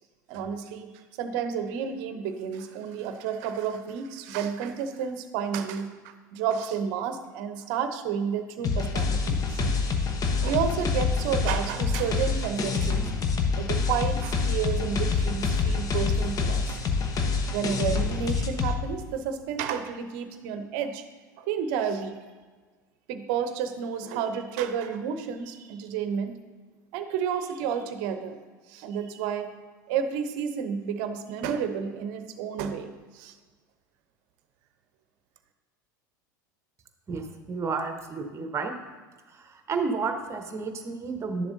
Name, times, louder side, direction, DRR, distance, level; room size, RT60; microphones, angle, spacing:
voice 1, 0.3-0.9 1.2-9.8 10.4-13.1 13.6-16.8 17.5-21.0 21.4-22.2 23.1-26.4 26.9-28.4 28.7-29.5 29.9-32.9 33.1-33.3, right 7 dB, 55° right, 9 dB, 0.7 m, -31 dB
sound 1, 8.6-18.7, left 4 dB, 35° left, 0.9 m, -26 dB
voice 2, 37.1-38.7 39.3-41.5, right 4 dB, 25° right, 6 dB, 1.0 m, -31 dB
11.0 x 7.0 x 2.7 m, 1.4 s
figure-of-eight pair, 80°, 10 cm